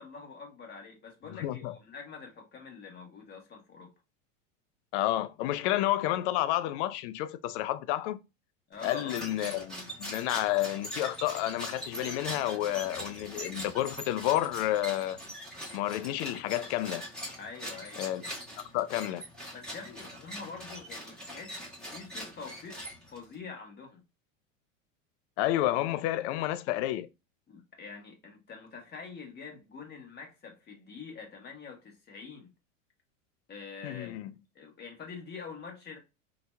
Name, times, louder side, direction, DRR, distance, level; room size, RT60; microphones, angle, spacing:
voice 1, 0.0-3.9 8.7-9.2 17.4-18.0 19.5-22.8 23.1-24.0 27.5-32.5 33.5-34.2 34.5-36.0, left 5 dB, 25° left, 1.3 m, -45 dB
voice 2, 1.4-1.7 4.9-8.2 8.8-15.2 15.7-17.0 18.0-18.2 18.7-19.2 25.4-27.1 33.8-34.3, left 14 dB, 55° left, 0.5 m, -30 dB
Plastic Squeaks and Creaking, 8.7-23.3, equal, ahead, 1.5 m, -42 dB
4.0 x 2.8 x 2.2 m
hypercardioid pair, 105°, 40 cm